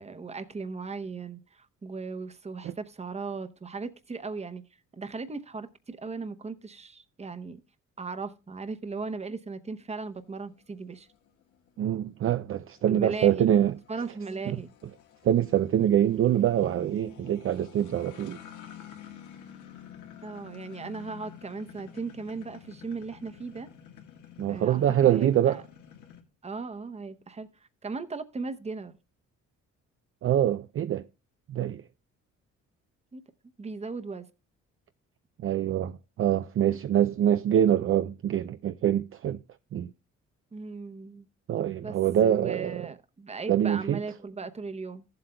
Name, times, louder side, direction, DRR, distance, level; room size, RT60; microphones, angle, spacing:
voice 1, 0.0-4.6 4.9-7.6 8.0-11.1 12.9-13.6 13.9-14.7 20.2-23.7 24.5-25.6 26.4-27.5 27.8-28.9 33.1-33.2 33.6-34.3 40.5-41.3 41.8-42.0 42.2-45.0, right 4 dB, 20° right, 0.8 m, -37 dB
sound 1, 10.1-26.2, left 9 dB, 75° left, 1.5 m, -50 dB
voice 2, 11.8-13.8 14.5-14.6 15.2-18.4 24.4-25.6 30.2-31.0 31.5-31.8 35.4-39.4 39.7-39.9 41.5-42.9 43.5-44.0, right 10 dB, 45° right, 0.4 m, -25 dB
14.5 x 7.8 x 2.2 m
cardioid pair, 90°, 30 cm